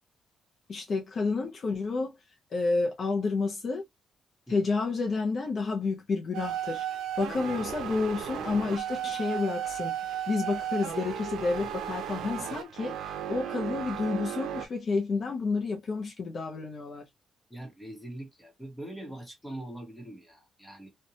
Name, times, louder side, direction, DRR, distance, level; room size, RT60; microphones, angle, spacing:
voice 1, 0.7-2.2 2.5-3.8 4.5-6.9 7.2-10.0 10.3-17.1, left 4 dB, 40° left, 0.5 m, -30 dB
sound 1, 6.3-14.7, right 10 dB, 85° right, 0.5 m, -35 dB
voice 2, 17.5-20.9, right 1 dB, 5° left, 0.9 m, -42 dB
2.6 x 2.2 x 2.7 m
cardioid pair, 145°, 0 cm